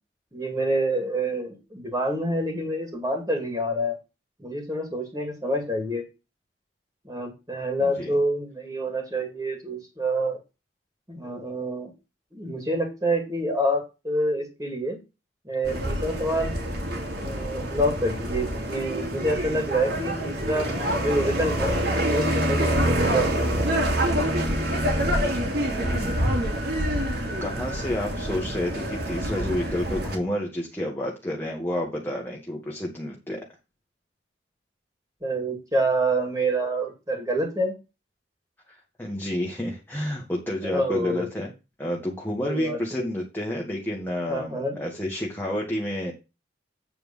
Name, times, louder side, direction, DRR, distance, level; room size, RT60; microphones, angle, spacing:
voice 1, 0.3-4.0 4.4-6.0 7.0-10.4 11.1-11.9 12.3-15.0 15.4-16.6 17.2-20.7 21.0-21.7 22.0-23.3 35.2-37.7 40.6-41.3 42.4-43.1 44.3-44.8, right 1 dB, 20° right, 2 dB, 2.6 m, -27 dB
voice 2, 7.8-8.1 25.7-26.2 26.6-27.1 27.4-33.4 39.0-41.5 41.8-46.1, left 1 dB, 10° left, -1 dB, 1.7 m, -30 dB
sound 1, 15.6-30.2, equal, 60° right, 2.7 m, -26 dB
8.9 x 4.5 x 5.5 m, 0.27 s
head